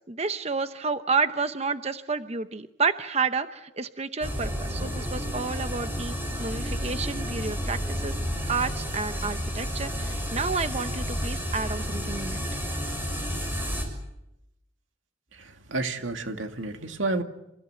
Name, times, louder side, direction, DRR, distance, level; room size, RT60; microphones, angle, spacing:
voice 1, 0.1-8.2 8.5-12.4, right 4 dB, 35° right, 0.8 m, -30 dB
sound 1, 4.2-13.8, equal, 10° right, 6.2 m, -31 dB
voice 2, 15.3-17.2, right 2 dB, 85° right, 2.3 m, -31 dB
28.5 x 17.0 x 9.7 m
head